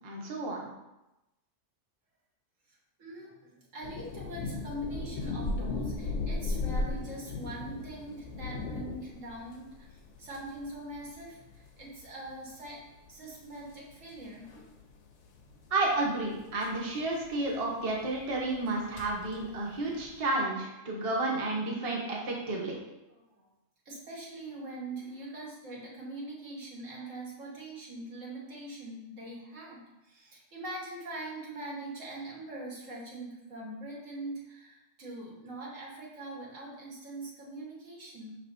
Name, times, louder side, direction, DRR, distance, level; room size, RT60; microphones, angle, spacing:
voice 1, 0.0-0.7 15.7-22.7, right 2 dB, 30° right, -2 dB, 0.8 m, -31 dB
voice 2, 2.7-12.8 13.1-14.5 15.5-15.6 23.1-23.5 23.8-38.4, right 1 dB, 80° right, -4 dB, 1.6 m, -43 dB
sound 1, 3.8-20.2, left 3 dB, 70° left, 0.9 m, -38 dB
6.0 x 3.4 x 2.6 m, 0.96 s
omnidirectional pair, 1.3 m